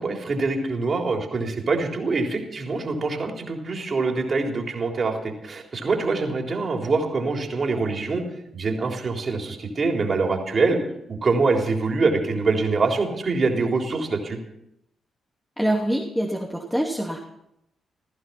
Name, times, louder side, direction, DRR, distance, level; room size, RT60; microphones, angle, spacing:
voice 1, 0.0-8.2 8.5-10.8 11.1-14.4, right 3 dB, 50° right, 3 dB, 3.7 m, -24 dB
voice 2, 15.6-17.2, right 1 dB, 5° left, 0 dB, 2.5 m, -25 dB
16.5 x 14.5 x 5.8 m, 0.79 s
hypercardioid pair, 45°, 0 cm